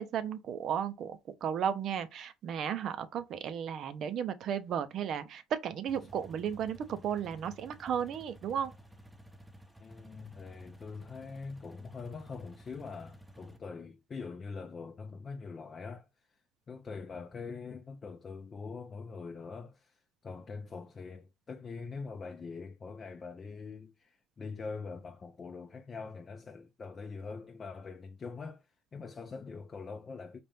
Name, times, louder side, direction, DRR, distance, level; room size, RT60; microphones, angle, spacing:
voice 1, 0.0-8.7, right 8 dB, 55° right, 0.6 m, -34 dB
sound 1, 5.9-13.6, right 1 dB, 5° right, 0.8 m, -54 dB
voice 2, 9.8-16.1 16.7-30.4, left 4 dB, 35° left, 0.5 m, -43 dB
4.3 x 2.5 x 3.4 m
supercardioid pair, 85°, 0 cm